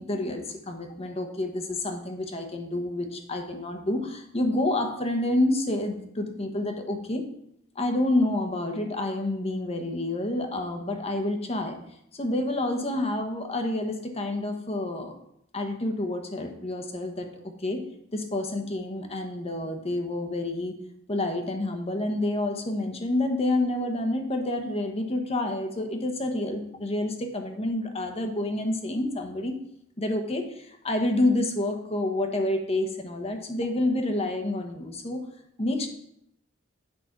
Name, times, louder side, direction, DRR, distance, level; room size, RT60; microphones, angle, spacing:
voice 1, 0.0-7.2 7.7-11.8 12.1-15.2 15.5-17.8 18.1-20.7 21.1-29.6 30.0-35.3 35.6-35.9, left 1 dB, 30° left, 5 dB, 1.1 m, -28 dB
8.9 x 5.3 x 5.8 m, 0.75 s
head